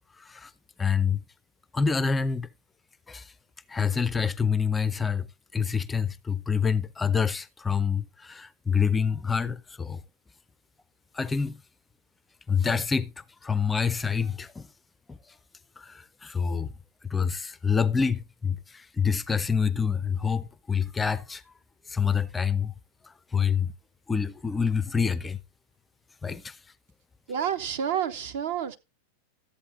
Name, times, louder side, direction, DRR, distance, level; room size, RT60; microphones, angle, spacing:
voice 1, 0.2-0.5 0.8-1.2 1.7-2.5 3.1-3.3 3.7-5.3 5.5-10.0 11.1-11.6 12.5-14.7 15.1-15.4 15.8-16.7 17.1-21.4 21.9-22.7 23.0-23.7 24.1-25.4 26.2-26.6, left 6 dB, 15° left, 0.4 m, -27 dB
voice 2, 27.3-28.8, right 8 dB, 55° right, 0.8 m, -29 dB
13.0 x 8.2 x 2.6 m
figure-of-eight pair, 90°, 0 cm